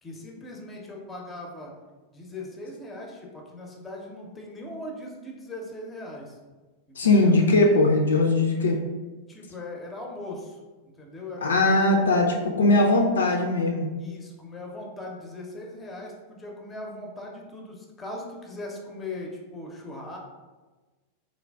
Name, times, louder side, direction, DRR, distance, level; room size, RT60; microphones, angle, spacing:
voice 1, 0.0-1.7 2.1-6.4 6.9-7.4 9.3-10.6 11.0-11.9 14.0-20.2, left 2 dB, 15° left, -1 dB, 0.5 m, -39 dB
voice 2, 7.0-8.8 11.4-13.9, left 2 dB, 70° left, 1 dB, 0.3 m, -20 dB
3.8 x 2.0 x 2.2 m, 1.2 s
figure-of-eight pair, 90°, 0 cm